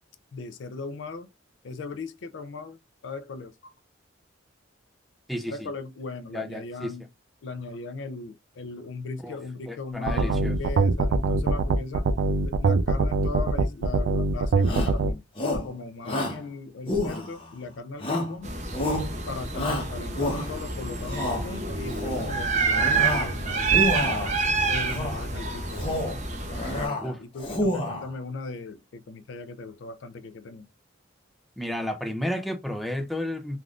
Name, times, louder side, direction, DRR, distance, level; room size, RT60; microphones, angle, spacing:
voice 1, 0.3-1.3 1.6-2.8 3.0-3.7 5.5-7.0 7.4-12.0 12.4-15.2 15.5-18.5 19.3-24.3 24.7-26.0 26.8-30.7, left 3 dB, 70° left, 0.4 m, -38 dB
voice 2, 5.3-5.7 6.3-7.0 9.2-9.4 9.7-10.6 27.0-27.2 31.6-33.6, left 1 dB, ahead, 0.4 m, -32 dB
sound 1, 10.1-15.1, right 3 dB, 70° right, 0.4 m, -22 dB
Shout, 14.6-15.0 15.4-15.7 16.0-16.4 16.9-17.5 18.0-18.4 18.7-19.1 19.5-20.6 21.0-21.4 21.9-22.3 22.7-23.3 23.6-24.3 24.9-25.2 25.7-26.2 26.5-27.0 27.4-28.1, left 1 dB, 30° left, 0.8 m, -29 dB
sound 2, 18.4-26.9, right 4 dB, 40° right, 0.7 m, -28 dB
3.4 x 2.5 x 2.3 m
head